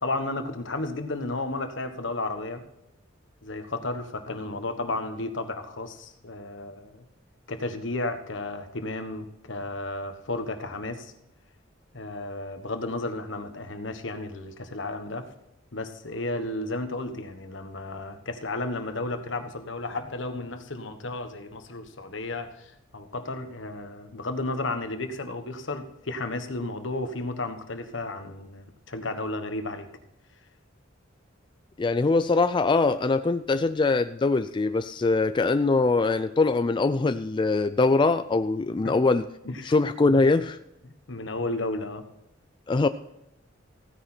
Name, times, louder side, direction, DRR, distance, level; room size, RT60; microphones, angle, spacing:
voice 1, 0.0-2.6 3.4-7.0 7.5-11.1 11.9-15.3 15.7-29.9 38.8-38.9 39.4-39.8 40.8-42.0, left 2 dB, 70° left, 8 dB, 1.4 m, -33 dB
voice 2, 31.8-39.2 39.6-40.6 42.7-42.9, left 3 dB, 25° left, 11 dB, 0.3 m, -22 dB
15.5 x 9.8 x 4.4 m, 0.85 s
head